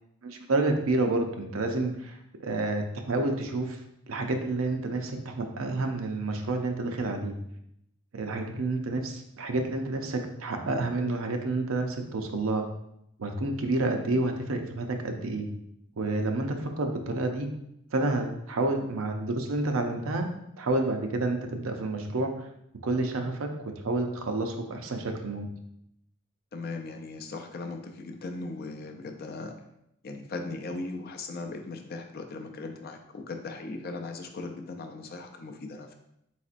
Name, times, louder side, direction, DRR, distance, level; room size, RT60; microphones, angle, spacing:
voice 1, 0.2-2.2 2.4-3.8 4.1-7.3 8.1-12.7 13.2-15.5 16.0-17.5 17.9-20.3 20.6-22.5 22.8-25.5, right 2 dB, 75° right, 4 dB, 0.6 m, -29 dB
voice 2, 26.5-29.5 30.0-35.9, left 3 dB, 45° left, 4 dB, 0.4 m, -38 dB
4.1 x 4.1 x 2.5 m, 0.79 s
head